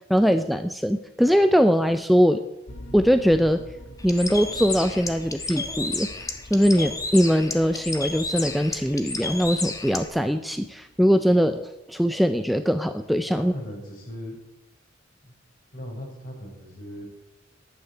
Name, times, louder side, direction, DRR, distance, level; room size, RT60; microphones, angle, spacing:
voice 1, 0.1-2.4 2.9-3.6 4.0-6.1 6.5-13.5, equal, ahead, 9 dB, 0.5 m, -21 dB
sound 1, 2.7-11.0, left 1 dB, 80° left, 1.6 m, -46 dB
Bird, 4.0-10.1, left 3 dB, 20° left, 1.4 m, -32 dB
voice 2, 13.3-14.4 15.2-15.3 15.7-17.0, equal, 50° left, 0 dB, 5.2 m, -38 dB
11.5 x 9.5 x 8.3 m, 0.97 s
head